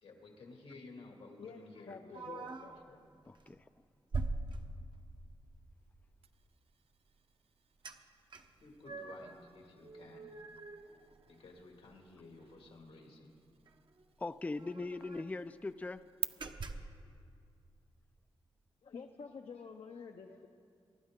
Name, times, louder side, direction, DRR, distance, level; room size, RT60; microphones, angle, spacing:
voice 1, 0.0-3.0 8.6-10.4 11.3-13.3, left 3 dB, 85° left, 1 dB, 2.3 m, -54 dB
voice 2, 1.4-2.5 18.8-20.5, left 5 dB, 70° left, 4 dB, 0.7 m, -49 dB
sound 1, 2.1-2.8 3.4-3.6 4.1-5.2 7.8-8.0 8.3-9.4 9.8-11.6 11.9-12.0 12.4-12.6 13.7-13.8 14.0-14.1 14.5-15.4 15.8-16.0 16.4-17.0, right 3 dB, 50° right, 0.8 m, -43 dB
voice 3, 3.3-3.7 14.2-16.0, left 3 dB, 15° left, 11 dB, 0.3 m, -40 dB
sound 2, 6.2-16.2, right 8 dB, 80° right, 0.4 m, -51 dB
24.0 x 11.5 x 3.7 m, 2.3 s
cardioid pair, 75°, 10 cm